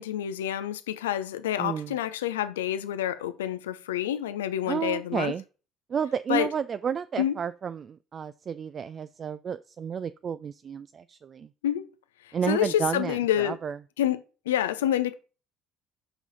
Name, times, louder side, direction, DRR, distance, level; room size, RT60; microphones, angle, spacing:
voice 1, 0.0-5.3 6.3-6.5 7.2-7.3 11.6-11.9 12.5-13.6 14.0-14.2 14.5-15.1, left 11 dB, 75° left, 0.5 m, -28 dB
voice 2, 1.6-1.9 4.7-5.4 5.9-11.5 12.3-13.8, right 7 dB, 40° right, 0.3 m, -31 dB
7.0 x 5.5 x 4.0 m
figure-of-eight pair, 55°, 0 cm